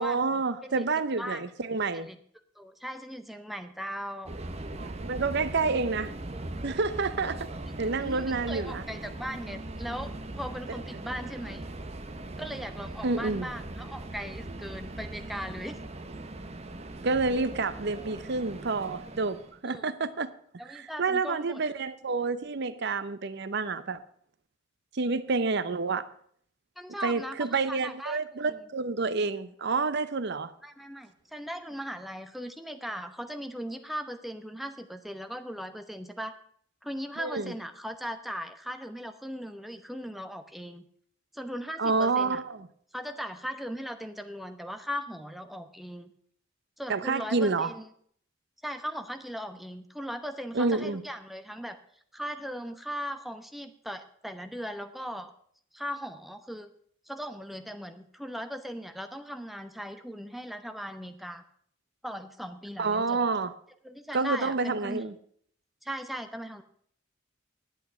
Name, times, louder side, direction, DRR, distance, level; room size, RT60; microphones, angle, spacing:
voice 1, 0.0-2.1 4.8-6.1 6.6-7.5 7.8-8.8 10.7-10.8 13.0-13.5 17.0-20.3 20.7-24.0 24.9-26.1 27.0-30.5 37.2-37.5 41.8-42.7 46.9-47.7 50.5-51.0 62.8-63.5 64.1-65.1, right 4 dB, 60° right, 0.7 m, -29 dB
voice 2, 2.6-4.3 8.0-11.7 12.4-15.8 19.6-19.9 20.6-21.6 26.8-27.4 27.7-28.6 30.6-36.4 36.8-40.8 41.3-42.4 42.9-46.1 46.8-47.9 48.6-51.8 52.1-55.3 55.7-56.7 57.1-61.4 62.0-63.2 63.8-65.0 65.8-66.6, equal, ahead, 0.8 m, -38 dB
Subway metro underground, 4.2-19.6, right 2 dB, 35° right, 0.9 m, -40 dB
11.0 x 8.5 x 6.7 m
head